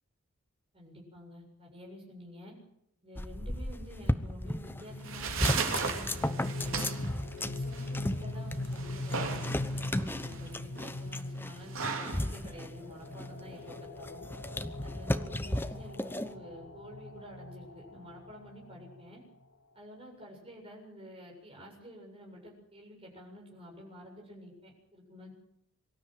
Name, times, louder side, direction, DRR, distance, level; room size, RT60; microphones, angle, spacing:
voice 1, 0.7-2.5 3.0-6.8 7.3-14.2 14.8-19.2 19.7-25.3, equal, 25° right, -1 dB, 7.5 m, -49 dB
sound 1, 3.2-4.9 5.2-16.3, left 1 dB, 10° left, 0.8 m, -35 dB
sound 2, 4.6-19.4, left 2 dB, 85° left, 1.5 m, -41 dB
sound 3, 4.8-13.8, right 5 dB, 75° right, 3.2 m, -38 dB
24.5 x 13.5 x 9.3 m, 0.75 s
head